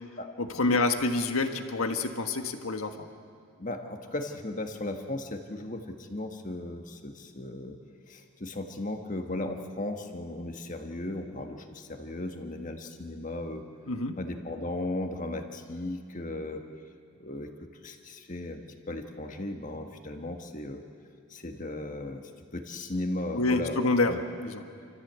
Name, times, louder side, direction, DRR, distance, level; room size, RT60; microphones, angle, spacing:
voice 1, 0.4-3.0 13.9-14.2 23.3-24.1 24.4-24.6, left 3 dB, 80° left, 6 dB, 1.5 m, -27 dB
voice 2, 3.6-7.8 8.1-13.6 14.2-16.6 17.2-17.5 17.8-20.8 21.3-24.2, left 2 dB, 35° left, 4 dB, 1.6 m, -36 dB
28.0 x 14.5 x 8.2 m, 2.5 s
head